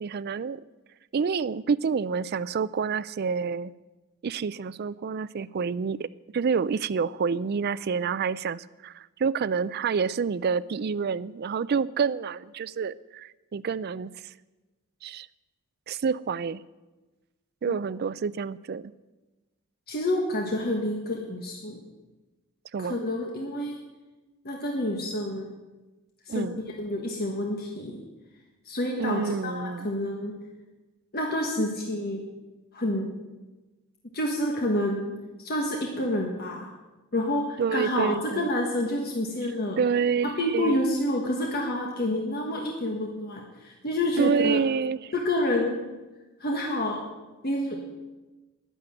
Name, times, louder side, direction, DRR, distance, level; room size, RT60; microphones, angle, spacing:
voice 1, 0.0-0.6 1.1-3.7 4.2-6.1 6.3-14.1 15.0-15.3 15.9-16.6 17.6-18.9 22.7-23.0 26.3-26.6 29.0-29.9 37.6-38.5 39.8-40.8 44.2-45.1, right 6 dB, 45° right, 17 dB, 0.4 m, -28 dB
voice 2, 19.9-21.8 22.8-23.8 24.4-25.5 26.3-26.5 26.8-28.0 28.6-30.3 31.1-32.2 32.7-33.1 34.1-35.1 35.4-36.7 37.1-39.8 40.4-44.6 45.1-45.8 46.4-47.0 47.4-47.8, left 1 dB, 45° left, 0 dB, 1.5 m, -28 dB
10.5 x 10.0 x 7.7 m, 1.2 s
head